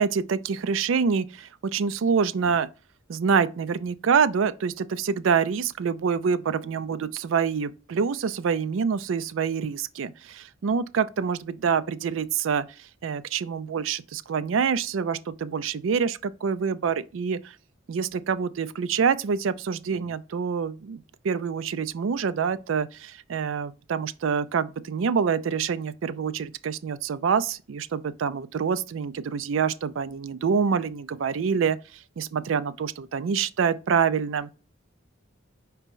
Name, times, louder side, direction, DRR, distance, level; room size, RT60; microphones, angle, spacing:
voice 1, 0.0-2.7 3.1-12.7 13.0-17.4 17.9-31.8 32.2-34.5, right 6 dB, 75° right, 0.4 m, -26 dB
4.9 x 2.8 x 3.6 m
head